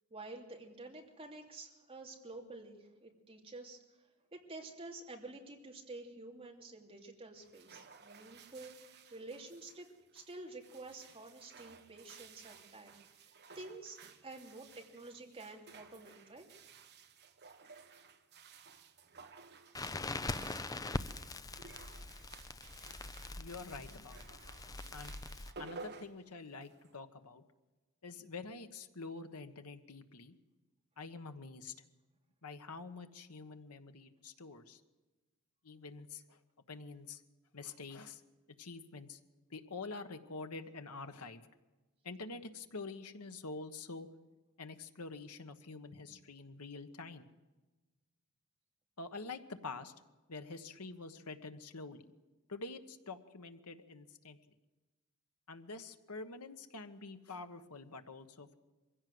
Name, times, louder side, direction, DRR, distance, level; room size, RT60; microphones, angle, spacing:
voice 1, 0.1-3.8 4.3-9.9 10.1-13.0 13.5-16.5, right 2 dB, 25° right, 1 dB, 2.9 m, -50 dB
sound 1, 7.4-27.0, right 5 dB, 50° right, 1.4 m, -56 dB
Crackle, 19.7-25.5, left 2 dB, 15° left, 0.6 m, -42 dB
voice 2, 23.4-24.4 24.9-25.1 25.6-27.4 28.0-30.3 31.0-31.7 32.4-34.8 35.6-36.4 36.7-37.2 37.5-38.2 38.6-39.2 39.5-41.5 42.0-44.1 44.6-47.3 49.0-49.9 50.3-52.0 52.5-54.4 55.5-58.5, left 3 dB, 85° left, 8 dB, 1.4 m, -47 dB
23.0 x 16.5 x 7.9 m, 1.2 s
head